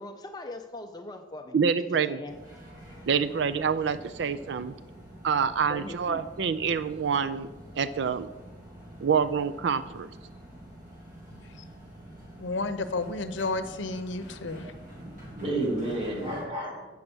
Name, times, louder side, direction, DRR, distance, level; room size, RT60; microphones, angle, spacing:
voice 1, 0.0-1.5 2.1-2.4 5.7-6.3, left 2 dB, 20° left, 6 dB, 0.5 m, -40 dB
voice 2, 1.5-2.2 3.1-4.7 5.2-7.5 7.8-8.3 9.0-10.1, right 6 dB, 65° right, 12 dB, 0.4 m, -26 dB
sound 1, 2.3-16.5, right 1 dB, 45° right, 2.8 m, -47 dB
voice 3, 12.4-14.7, left 3 dB, 80° left, 10 dB, 0.7 m, -32 dB
voice 4, 14.6-16.9, right 1 dB, 25° right, -1 dB, 2.0 m, -32 dB
8.4 x 6.6 x 6.1 m, 1.2 s
head